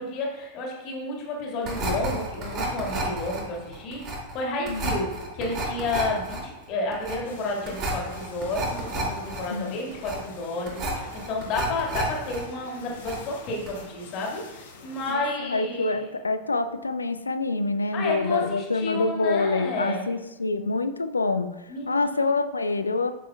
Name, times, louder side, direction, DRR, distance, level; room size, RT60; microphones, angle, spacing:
voice 1, 0.0-16.0 17.9-20.1 21.7-22.3, left 2 dB, 40° left, -1 dB, 1.9 m, -31 dB
sound 1, 1.6-12.4 12.7-13.4 13.7-13.8, right 2 dB, 35° right, 2.6 m, -32 dB
voice 2, 4.7-5.0 9.5-9.8 15.1-21.5 21.9-23.1, left 3 dB, 80° left, 10 dB, 0.5 m, -26 dB
sound 2, 7.2-15.1, left 4 dB, 60° left, 1.2 m, -47 dB
10.0 x 6.1 x 2.3 m, 1.0 s
figure-of-eight pair, 90°, 0 cm